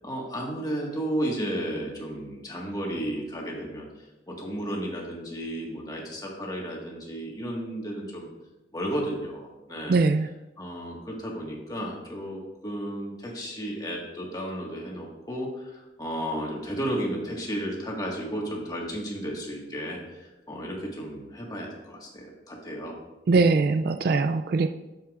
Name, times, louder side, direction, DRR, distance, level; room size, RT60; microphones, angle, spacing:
voice 1, 0.0-3.9 4.3-8.3 8.7-10.0 10.6-22.9, equal, 20° left, -2 dB, 1.5 m, -33 dB
voice 2, 9.9-10.3 23.3-24.7, right 3 dB, 55° right, 9 dB, 0.3 m, -21 dB
11.0 x 7.2 x 2.4 m, 1.0 s
head